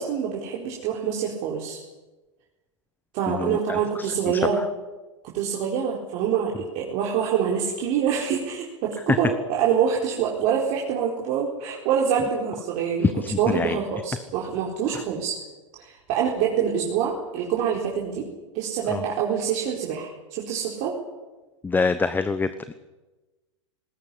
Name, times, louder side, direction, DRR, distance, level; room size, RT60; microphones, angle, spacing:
voice 1, 0.0-1.8 3.1-4.6 5.3-15.4 15.8-18.3 18.5-20.9, right 7 dB, 45° right, -3 dB, 4.5 m, -26 dB
voice 2, 3.3-4.1 13.0-13.8 14.9-15.0 18.9-19.0 21.6-22.7, left 4 dB, 10° left, 13 dB, 1.0 m, -25 dB
20.0 x 18.5 x 10.0 m, 1.2 s
hypercardioid pair, 100°, 16 cm